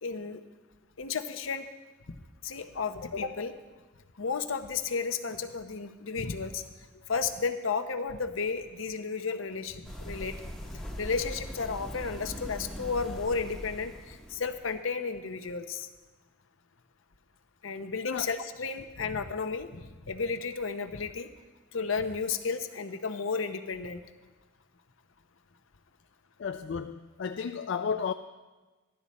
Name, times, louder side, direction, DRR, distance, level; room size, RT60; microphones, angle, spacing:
voice 1, 0.0-0.4 1.0-1.7 2.1-2.2 2.4-3.5 4.1-6.6 7.1-10.4 11.0-15.9 17.6-21.3 21.7-24.0, left 5 dB, 80° left, 8 dB, 0.8 m, -33 dB
sound 1, 9.8-14.8, equal, 5° left, 0.8 m, -41 dB
voice 2, 26.4-28.1, left 6 dB, 60° left, 7 dB, 0.3 m, -33 dB
13.5 x 11.5 x 4.2 m, 1.2 s
head